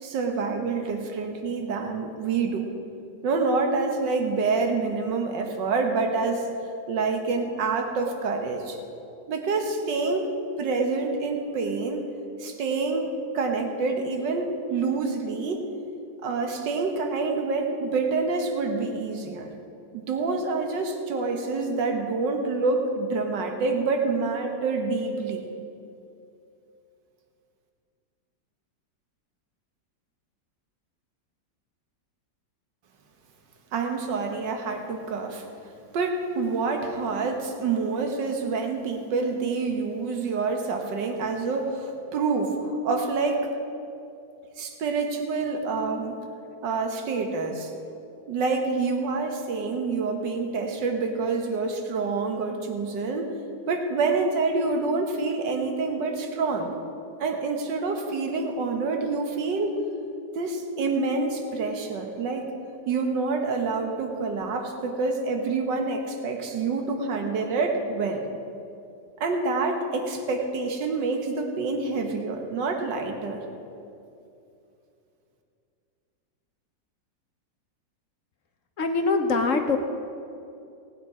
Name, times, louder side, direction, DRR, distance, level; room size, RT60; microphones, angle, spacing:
voice 1, 0.0-2.7 3.2-6.5 6.9-8.8 9.3-10.3 10.6-12.0 12.4-15.6 16.2-19.5 19.9-25.4 33.7-35.4 35.9-43.4 44.6-46.2 46.6-47.7 48.3-53.3 53.7-56.7 57.2-59.8 60.3-62.5 62.9-68.2 69.2-73.4, right 4 dB, 75° right, 3 dB, 1.9 m, -27 dB
voice 2, 78.8-79.8, left 3 dB, 55° left, 5 dB, 1.0 m, -23 dB
18.5 x 9.0 x 4.9 m, 2.6 s
omnidirectional pair, 2.0 m